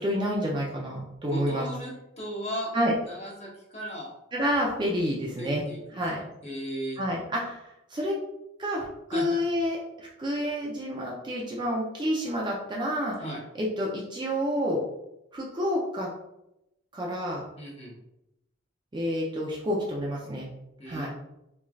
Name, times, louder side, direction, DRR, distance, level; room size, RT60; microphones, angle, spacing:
voice 1, 0.0-1.7 2.7-2.9 4.3-5.6 5.9-6.2 7.0-8.2 8.6-13.1 13.5-14.8 15.3-16.1 16.9-17.4 18.9-20.5 20.9-21.1, equal, 20° right, -3 dB, 0.4 m, -29 dB
voice 2, 1.3-2.7 3.0-4.1 5.4-6.0 6.4-7.0 9.1-9.4 13.2-13.4 17.6-18.0 20.8-21.1, equal, 30° left, -4 dB, 0.9 m, -36 dB
3.6 x 3.1 x 2.3 m, 0.87 s
head